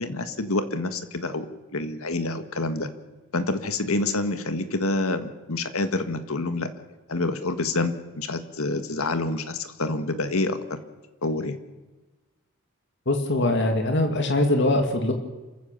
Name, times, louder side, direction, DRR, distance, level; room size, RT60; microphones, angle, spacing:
voice 1, 0.0-1.5 1.7-2.9 3.3-6.7 7.1-10.6 11.2-11.6, left 2 dB, 80° left, 9 dB, 1.8 m, -27 dB
voice 2, 13.1-15.1, left 1 dB, 55° left, 4 dB, 2.4 m, -22 dB
27.5 x 15.0 x 6.9 m, 1.2 s
head